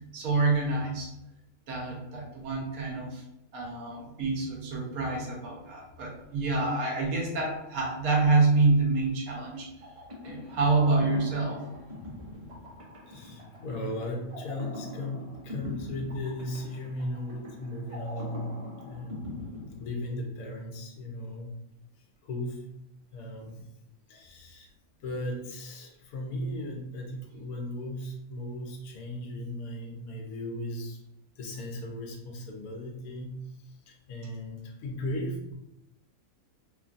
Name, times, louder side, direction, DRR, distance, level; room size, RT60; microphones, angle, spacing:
voice 1, 0.1-1.1 1.7-3.2 3.5-9.7 10.2-11.7, right 3 dB, 80° right, -1 dB, 1.2 m, -27 dB
sound 1, 9.8-20.5, left 1 dB, 60° right, 0.3 m, -42 dB
voice 2, 13.1-19.4 19.8-21.5 22.2-22.7 23.1-23.7 24.1-24.7 25.0-31.0 31.4-35.5, left 1 dB, 75° left, 0 dB, 1.1 m, -37 dB
3.1 x 2.2 x 2.5 m, 0.86 s
omnidirectional pair, 1.5 m